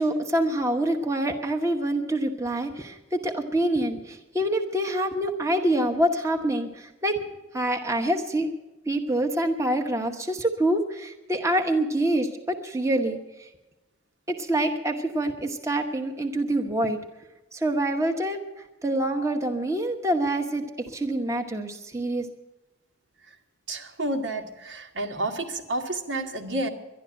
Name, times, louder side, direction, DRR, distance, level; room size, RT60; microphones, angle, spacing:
voice 1, 0.0-7.2 7.5-8.5 8.9-13.5 14.3-17.0 17.5-18.4 18.8-22.3, right 1 dB, 15° right, 3 dB, 1.0 m, -26 dB
voice 2, 23.7-26.7, right 1 dB, 85° right, 3 dB, 1.8 m, -30 dB
11.5 x 11.5 x 8.8 m, 1.0 s
head